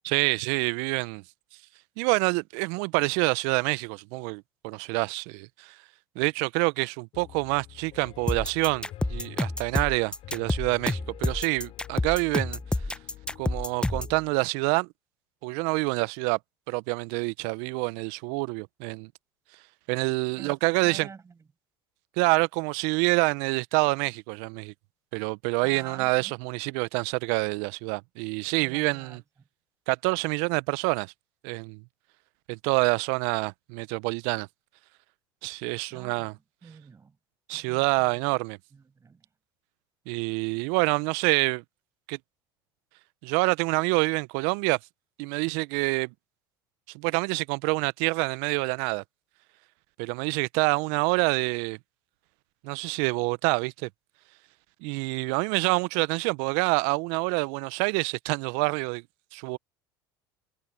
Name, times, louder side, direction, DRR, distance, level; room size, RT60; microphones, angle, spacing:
voice 1, 0.0-1.2 2.0-5.8 6.1-12.6 13.4-14.9 15.4-16.4 16.7-19.1 19.9-21.1 22.2-24.7 25.1-29.2 29.9-31.1 31.4-31.8 32.5-34.5 35.4-36.3 37.5-38.6 40.1-41.6 42.1-42.2 43.2-44.8 45.2-46.1 46.9-49.0 50.0-51.8 52.6-53.9 54.8-59.0 59.3-59.6, right 29 dB, 65° right, 1.1 m, -27 dB
Piano, 7.1-14.2, left 14 dB, 50° left, 4.3 m, -47 dB
sound 1, 8.3-14.2, left 2 dB, 10° left, 1.1 m, -28 dB
voice 2, 20.3-21.5 25.6-26.4 28.6-29.5 35.9-36.3 36.6-37.2 38.7-39.3, right 5 dB, 25° right, 7.6 m, -48 dB
hypercardioid pair, 75°, 12 cm